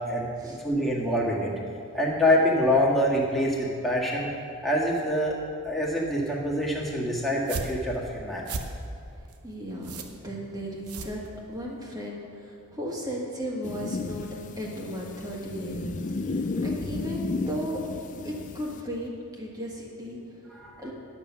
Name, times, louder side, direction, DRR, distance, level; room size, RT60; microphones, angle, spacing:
voice 1, 0.1-1.5 1.9-4.3 4.6-5.3 5.6-8.5 20.5-20.8, left 1 dB, ahead, -5 dB, 1.7 m, -25 dB
sound 1, 7.3-11.8, right 3 dB, 80° right, 0.9 m, -37 dB
voice 2, 9.1-11.2 11.5-17.8 18.2-20.9, equal, 15° right, -3 dB, 1.8 m, -36 dB
sound 2, 13.6-18.8, left 3 dB, 35° left, 0.4 m, -33 dB
11.0 x 7.3 x 6.1 m, 2.4 s
head